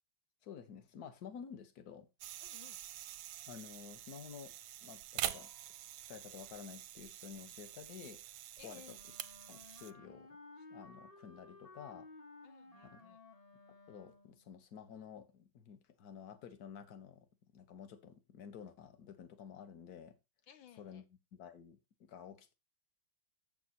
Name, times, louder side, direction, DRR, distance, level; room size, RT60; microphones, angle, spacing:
voice 1, 0.4-2.1 3.5-4.5 4.8-5.5 6.1-8.3 8.6-9.0 9.5-10.3 10.7-12.1 12.9-13.0 13.9-17.3 17.5-20.2 20.8-21.0 21.3-22.5, left 7 dB, 55° left, 1.5 m, -51 dB
sound 1, 2.2-9.9, right 13 dB, 90° right, 1.4 m, -46 dB
voice 2, 2.4-2.8 8.6-9.0 12.4-13.2 20.5-21.0, left 9 dB, 80° left, 1.7 m, -59 dB
Wind instrument woodwind instrument, 8.9-14.5, left 2 dB, 25° left, 0.9 m, -57 dB
7.7 x 6.7 x 4.1 m
omnidirectional pair, 2.1 m